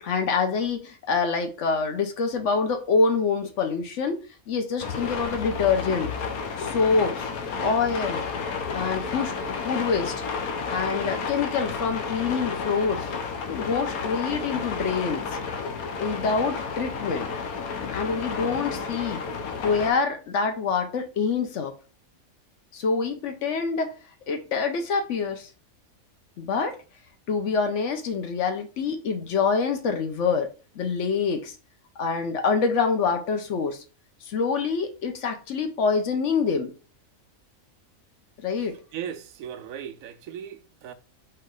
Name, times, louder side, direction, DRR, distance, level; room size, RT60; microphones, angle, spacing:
voice 1, 0.0-4.2 4.5-6.1 6.6-7.3 7.6-8.2 8.7-10.1 10.7-13.1 13.5-15.3 16.0-17.3 17.9-19.2 19.6-21.7 22.7-23.9 24.3-25.5 26.4-26.8 27.3-31.5 32.0-33.8 34.2-36.7 38.4-38.8, left 5 dB, 65° left, 0.9 m, -26 dB
sound 1, 4.8-19.9, left 5 dB, 90° left, 1.2 m, -31 dB
voice 2, 38.9-40.9, right 9 dB, 75° right, 1.0 m, -37 dB
4.5 x 3.1 x 3.8 m
omnidirectional pair, 1.5 m